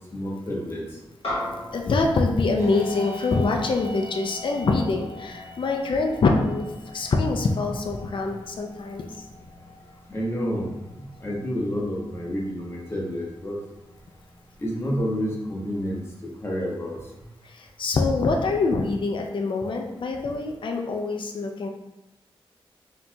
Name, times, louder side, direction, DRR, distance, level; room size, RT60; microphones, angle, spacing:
voice 1, 0.1-0.8 10.1-13.6 14.6-16.0 16.4-17.0, equal, 25° left, -4 dB, 1.0 m, -29 dB
sound 1, 1.2-5.9, left 1 dB, 75° left, 1.0 m, -37 dB
voice 2, 1.7-6.7 6.9-9.3 17.4-21.7, left 3 dB, 55° left, 2 dB, 0.4 m, -25 dB
sound 2, 2.6-16.2, left 2 dB, 80° right, 1.0 m, -43 dB
4.0 x 2.8 x 2.3 m, 1.0 s
cardioid pair, 70°, 10 cm